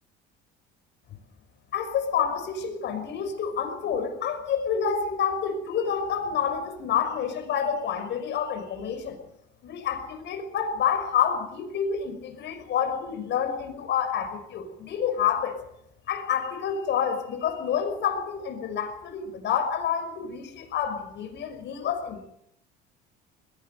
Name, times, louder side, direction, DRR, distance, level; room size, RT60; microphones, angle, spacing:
voice 1, 1.7-9.2 9.6-15.6 16.1-22.3, left 7 dB, 55° left, 7 dB, 5.9 m, -28 dB
21.0 x 17.5 x 8.0 m, 0.79 s
cardioid pair, 105°, 21 cm